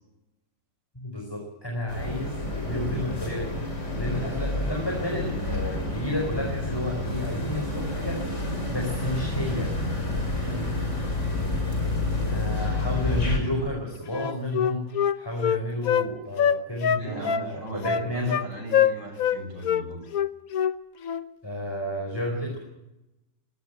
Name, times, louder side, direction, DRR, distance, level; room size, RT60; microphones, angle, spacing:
voice 1, 0.9-8.2 8.7-9.7 12.2-18.4 21.4-22.6, left 1 dB, 10° left, 1 dB, 4.4 m, -31 dB
sound 1, 1.9-13.4, left 2 dB, 40° left, 5.3 m, -29 dB
sound 2, 7.0-12.6, right 2 dB, 50° right, 5.0 m, -42 dB
voice 2, 10.3-10.7 16.9-20.0, right 2 dB, 65° right, 4 dB, 7.3 m, -38 dB
Wind instrument woodwind instrument, 14.1-16.1 16.4-17.5 17.8-18.5 18.7-19.4 19.6-19.8 20.1-20.8 21.0-21.2, left 8 dB, 55° left, 1.2 m, -24 dB
20.5 x 17.5 x 9.1 m, 0.94 s
omnidirectional pair, 2.0 m